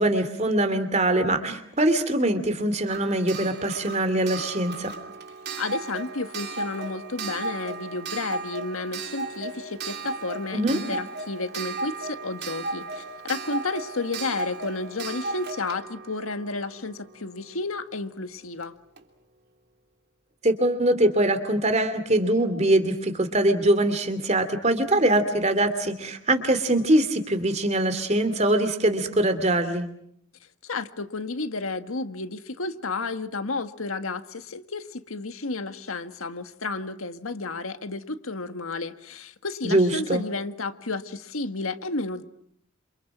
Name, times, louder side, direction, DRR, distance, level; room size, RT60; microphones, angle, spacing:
voice 1, 0.0-4.9 10.5-10.8 20.4-29.9 39.6-40.2, right 1 dB, 30° right, 10 dB, 2.7 m, -23 dB
Clock, 2.9-17.5 18.6-18.7 19.0-19.1, right 3 dB, 50° right, 3.2 m, -35 dB
voice 2, 5.6-18.7 30.6-42.2, left 3 dB, 85° left, 9 dB, 1.7 m, -32 dB
28.0 x 28.0 x 6.2 m, 0.69 s
head